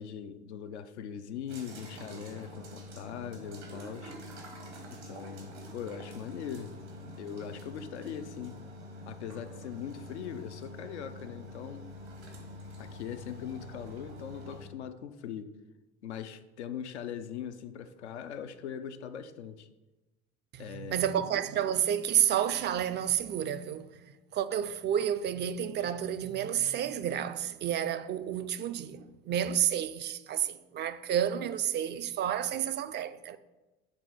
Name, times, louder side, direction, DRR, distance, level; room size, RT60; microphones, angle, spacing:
voice 1, 0.0-4.2 4.9-6.7 7.2-8.6 9.1-11.9 12.8-15.5 16.0-19.7 20.6-21.2, left 8 dB, 80° left, 0.6 m, -41 dB
sound 1, 1.5-14.7, left 1 dB, 85° right, 1.6 m, -46 dB
voice 2, 20.5-23.9 24.3-33.4, right 10 dB, 35° right, 0.4 m, -30 dB
7.5 x 3.6 x 4.8 m
figure-of-eight pair, 65°, 33 cm